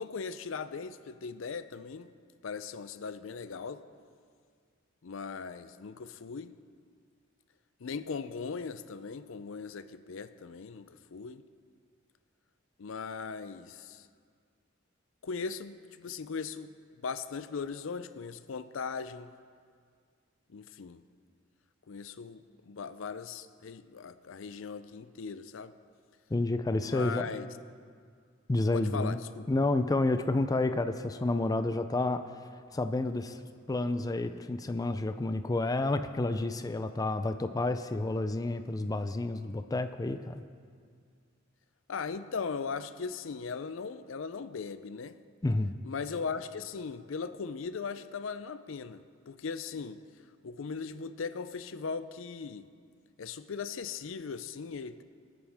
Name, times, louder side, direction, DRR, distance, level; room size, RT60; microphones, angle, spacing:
voice 1, 0.0-2.1 2.4-3.8 5.0-6.5 7.8-11.4 12.8-14.1 15.2-16.7 17.0-19.3 20.5-21.0 21.9-25.7 26.8-27.5 28.7-29.4 41.9-45.2 45.8-50.0 50.4-52.7 53.2-55.0, left 5 dB, 75° left, 12 dB, 0.5 m, -39 dB
voice 2, 26.3-27.3 28.5-29.2 29.5-32.2 32.7-33.4 33.7-40.4 45.4-45.8, left 2 dB, 20° left, 9 dB, 0.4 m, -30 dB
23.5 x 9.3 x 3.5 m, 2.1 s
head